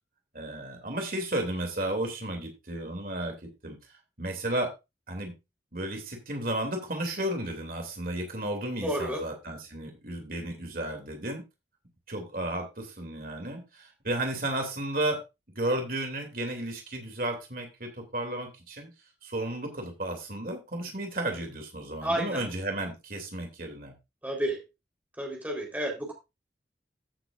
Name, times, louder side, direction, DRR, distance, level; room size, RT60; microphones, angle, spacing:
voice 1, 0.3-4.7 5.1-5.3 5.7-11.4 12.1-15.2 15.5-18.9 19.2-23.9, right 1 dB, 55° right, 3 dB, 2.9 m, -33 dB
voice 2, 8.8-9.2 22.0-22.4 24.2-24.6 25.2-26.1, right 1 dB, 10° right, -1 dB, 4.1 m, -30 dB
15.5 x 8.0 x 2.6 m, 0.25 s
head